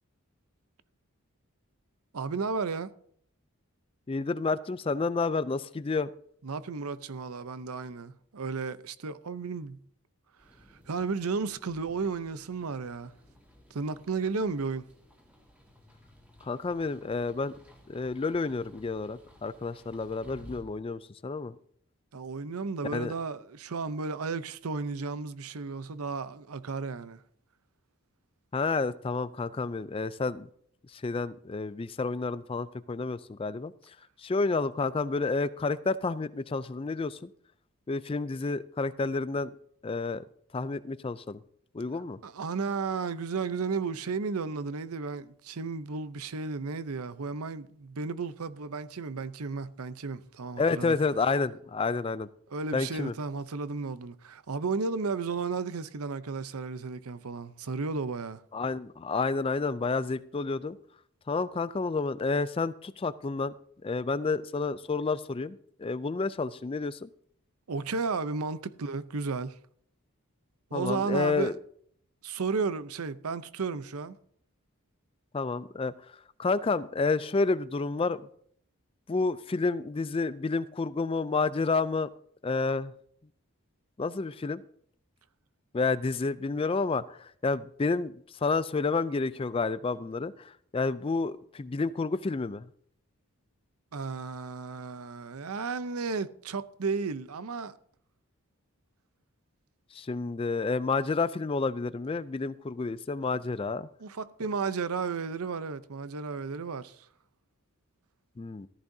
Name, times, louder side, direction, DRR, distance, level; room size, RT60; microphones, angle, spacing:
voice 1, 2.1-2.9 6.4-9.8 10.9-13.1 13.7-14.8 22.1-27.2 42.2-51.0 52.5-58.4 67.7-69.6 70.7-71.5 72.2-74.2 93.9-97.7 104.0-107.0, right 4 dB, 85° right, 0.7 m, -33 dB
voice 2, 4.1-6.1 16.4-17.5 17.9-21.5 22.9-23.1 28.5-30.5 30.9-33.7 34.2-37.3 37.9-39.5 39.8-40.2 40.5-41.4 41.7-42.2 50.6-52.3 52.7-53.1 58.5-60.8 61.3-63.5 63.8-67.1 70.7-71.5 75.3-75.9 76.4-78.2 79.1-82.1 82.4-82.9 84.0-84.6 85.7-88.1 88.4-92.7 99.9-103.9 108.4-108.7, left 4 dB, 25° left, 0.3 m, -30 dB
sound 1, 10.4-20.6, left 1 dB, 5° right, 2.1 m, -56 dB
14.0 x 14.0 x 2.7 m
head